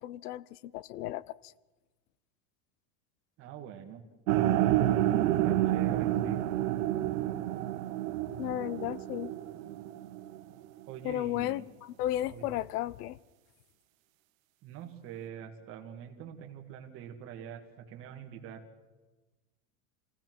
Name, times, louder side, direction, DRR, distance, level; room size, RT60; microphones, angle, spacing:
voice 1, 0.0-1.5 8.4-9.3 11.0-13.2, left 13 dB, 85° left, 0.7 m, -34 dB
voice 2, 3.4-4.0 4.6-6.4 10.9-11.6 12.3-12.4 14.6-18.6, right 9 dB, 30° right, 1.8 m, -45 dB
sound 1, 4.3-10.4, right 13 dB, 60° right, 1.1 m, -29 dB
26.5 x 16.0 x 6.1 m
supercardioid pair, 175°, 45 cm